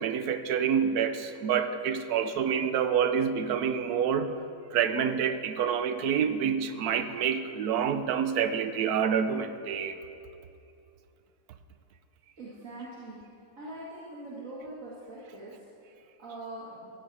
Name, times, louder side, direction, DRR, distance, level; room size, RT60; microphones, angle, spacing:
voice 1, 0.0-4.4 4.7-10.0, right 7 dB, 70° right, 10 dB, 1.0 m, -27 dB
voice 2, 12.4-13.2 13.6-16.9, right 2 dB, 50° right, -7 dB, 2.1 m, -43 dB
15.5 x 9.1 x 4.7 m, 2.6 s
omnidirectional pair, 1.8 m